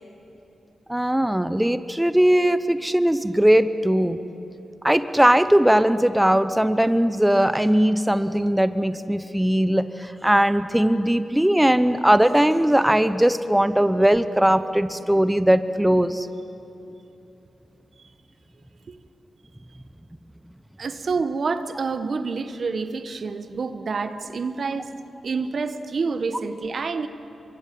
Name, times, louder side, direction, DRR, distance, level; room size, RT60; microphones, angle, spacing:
voice 1, 0.9-4.2 4.8-16.3, right 1 dB, 10° right, 12 dB, 1.0 m, -19 dB
voice 2, 20.8-24.9 25.2-27.1, right 4 dB, 60° right, 10 dB, 1.2 m, -28 dB
24.5 x 22.5 x 7.7 m, 3.0 s
supercardioid pair, 45°, 0 cm